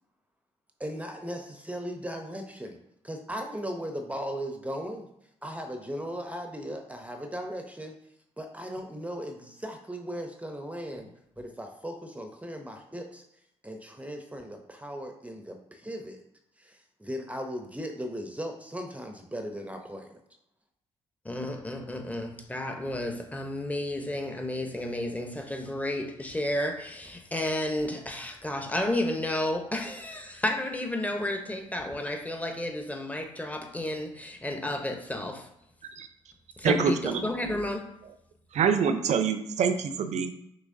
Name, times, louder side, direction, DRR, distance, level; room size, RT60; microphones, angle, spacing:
voice 1, 0.8-2.8 3.0-5.1 5.4-7.9 8.4-11.1 11.4-13.2 13.6-16.2 16.6-20.2, equal, 10° right, 4 dB, 0.7 m, -37 dB
voice 2, 21.2-35.5 36.6-37.9, left 1 dB, 10° left, 4 dB, 0.9 m, -32 dB
voice 3, 36.6-37.3 38.5-40.3, right 6 dB, 60° right, 9 dB, 0.6 m, -25 dB
6.1 x 2.9 x 2.7 m, 0.80 s
supercardioid pair, 60°, 13 cm